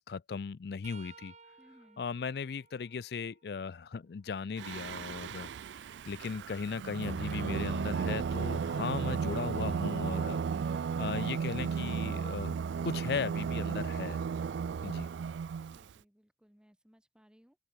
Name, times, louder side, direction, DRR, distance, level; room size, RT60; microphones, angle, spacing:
voice 1, 0.0-1.3 2.0-5.5 6.1-10.4 10.7-12.6 12.8-14.2 14.8-15.1, left 5 dB, 60° left, 0.4 m, -37 dB
sound 1, 0.8-4.6 5.1-7.1 10.0-10.2 11.4-11.6 12.9-13.0, right 6 dB, 40° right, 1.5 m, -60 dB
voice 2, 1.6-2.1 15.6-17.6, equal, 5° right, 1.0 m, -63 dB
Singing, 4.6-15.9, right 6 dB, 80° right, 0.3 m, -34 dB
open air
head